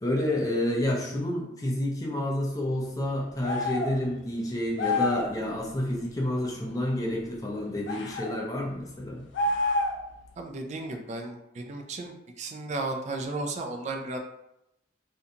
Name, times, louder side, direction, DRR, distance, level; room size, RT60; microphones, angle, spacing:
voice 1, 0.0-9.2, left 1 dB, 20° left, -2 dB, 0.5 m, -29 dB
sound 1, 3.4-4.0 4.8-5.3 7.9-8.3 9.3-10.1, left 2 dB, 80° left, 0.4 m, -28 dB
voice 2, 10.4-14.2, right 2 dB, 40° right, 4 dB, 0.3 m, -34 dB
2.5 x 2.2 x 2.7 m, 0.84 s
head